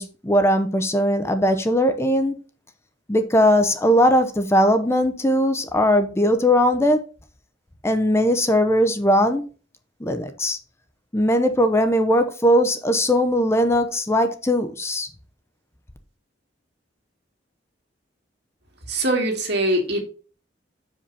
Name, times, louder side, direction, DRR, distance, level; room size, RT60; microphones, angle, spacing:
voice 1, 0.0-2.4 3.1-7.0 7.8-9.4 10.0-10.6 11.1-15.1, equal, 15° left, 0.7 m, -19 dB
voice 2, 18.9-20.0, right 1 dB, 65° right, 2.3 m, -22 dB
6.6 x 5.1 x 5.5 m
head